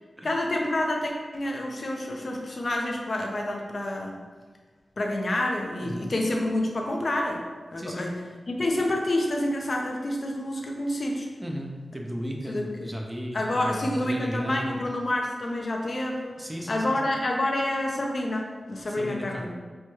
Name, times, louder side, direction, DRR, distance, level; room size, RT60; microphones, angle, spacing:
voice 1, 0.2-4.2 5.0-7.4 7.7-11.3 12.5-12.9 13.3-16.4 16.7-19.5, left 1 dB, 50° left, 1 dB, 0.5 m, -28 dB
voice 2, 11.4-14.8 16.4-17.0 18.9-19.5, equal, 15° right, 0 dB, 0.4 m, -35 dB
4.4 x 2.3 x 3.0 m, 1.5 s
wide cardioid pair, 95°, 0 cm